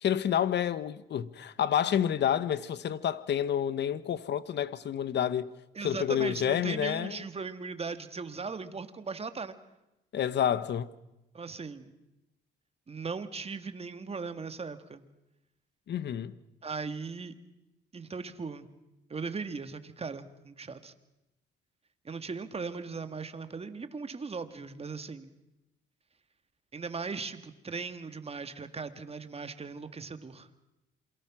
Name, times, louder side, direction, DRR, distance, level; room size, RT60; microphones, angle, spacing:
voice 1, 0.0-5.5 5.8-7.2 10.1-10.9 15.9-16.4, left 9 dB, 60° left, 1.2 m, -29 dB
voice 2, 5.7-9.6 11.3-11.9 12.9-15.0 16.6-17.3 17.9-18.7 19.1-20.9 22.0-25.3 26.7-30.5, right 4 dB, 30° right, 1.9 m, -38 dB
27.5 x 23.0 x 6.2 m
cardioid pair, 90°, 20 cm